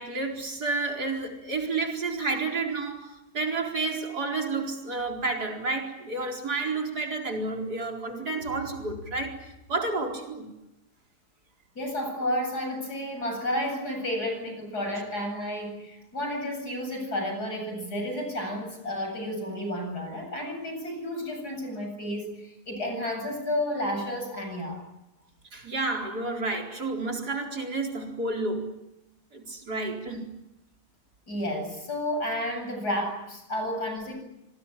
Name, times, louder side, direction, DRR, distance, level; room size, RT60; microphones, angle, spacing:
voice 1, 0.0-10.5 25.5-28.7 29.3-30.3, right 3 dB, 85° right, 4.9 m, -30 dB
voice 2, 11.8-24.8 31.3-34.1, left 1 dB, 90° left, 8.7 m, -31 dB
26.5 x 20.0 x 10.0 m
omnidirectional pair, 1.7 m